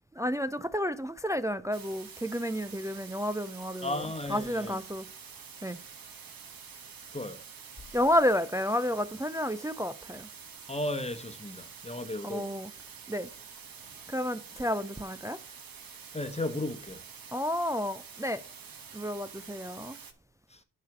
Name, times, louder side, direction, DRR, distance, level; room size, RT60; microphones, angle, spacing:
voice 1, 0.2-5.1 5.6-5.8 7.9-10.3 12.2-12.7 13.1-13.3 14.1-15.4 17.3-18.4 18.9-20.0, left 1 dB, 10° right, 0.3 m, -31 dB
sound 1, 1.7-20.1, right 6 dB, 55° right, 1.3 m, -48 dB
voice 2, 3.8-4.8 7.1-7.4 10.7-12.5 16.1-17.0 20.5-20.6, left 1 dB, 15° left, 1.1 m, -35 dB
9.3 x 3.3 x 6.0 m
supercardioid pair, 55°, 42 cm